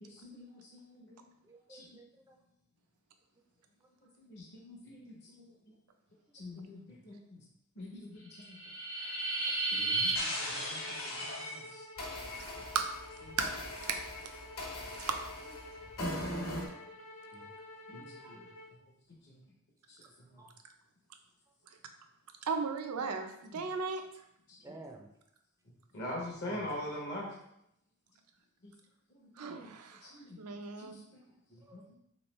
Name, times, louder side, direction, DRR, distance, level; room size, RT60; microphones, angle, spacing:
voice 1, 0.0-1.2 1.7-2.0 4.2-5.7 6.3-7.4 7.8-8.6 8.9-9.3 9.7-11.9 17.3-17.5 17.9-18.5 19.2-19.4 19.9-20.4 23.0-23.1 23.5-23.6 24.5-24.7 25.9-27.4 28.6-28.7 29.1-29.6 30.0-30.4 30.8-31.8, left 1 dB, 50° left, -2 dB, 0.7 m, -45 dB
voice 2, 1.4-2.4 9.5-10.0 16.2-16.4 18.2-18.3 20.4-20.5 24.6-25.1 26.4-26.7 31.7-31.9, right 2 dB, 15° right, 2 dB, 0.3 m, -52 dB
sound 1, 8.4-11.6 12.0-16.7, right 1 dB, 70° left, 1.1 m, -36 dB
sound 2, 10.4-18.7, left 2 dB, 85° left, 1.1 m, -50 dB
voice 3, 22.5-24.0 29.4-31.0, right 5 dB, 90° right, 6 dB, 0.5 m, -35 dB
3.4 x 3.1 x 3.1 m, 0.77 s
head